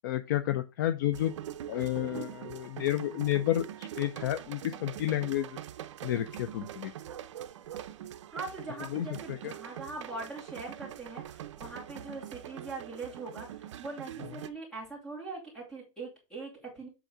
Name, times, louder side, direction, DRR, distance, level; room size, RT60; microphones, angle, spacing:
voice 1, 0.0-1.3 1.7-5.5 6.0-6.9 8.9-9.5, left 13 dB, 40° left, 11 dB, 0.4 m, -31 dB
sound 1, 1.1-14.5, right 11 dB, 60° right, 0.7 m, -43 dB
voice 2, 8.3-16.9, right 3 dB, 5° left, -3 dB, 2.6 m, -42 dB
8.0 x 3.7 x 4.9 m, 0.28 s
supercardioid pair, 170°, 17 cm